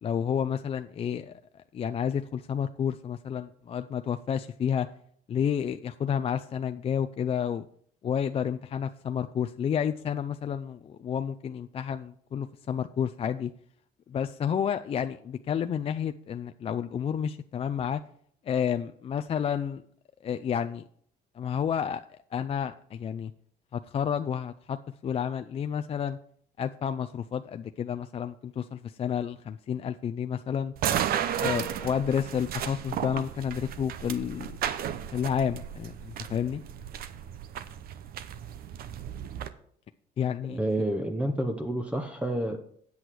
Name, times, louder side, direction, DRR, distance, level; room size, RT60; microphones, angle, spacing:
voice 1, 0.0-4.9 5.3-7.7 8.0-13.5 14.1-18.0 18.5-19.8 20.2-20.8 21.4-22.0 22.3-23.3 23.7-24.8 25.0-26.2 26.6-30.7 31.3-34.6 35.1-36.6 40.2-40.6, left 8 dB, 35° left, 9 dB, 0.4 m, -30 dB
sound 1, 30.8-39.5, right 9 dB, 60° right, 0.7 m, -34 dB
voice 2, 40.5-42.6, right 1 dB, 5° right, 5 dB, 0.8 m, -29 dB
8.4 x 8.0 x 4.6 m, 0.62 s
cardioid pair, 110°, 17 cm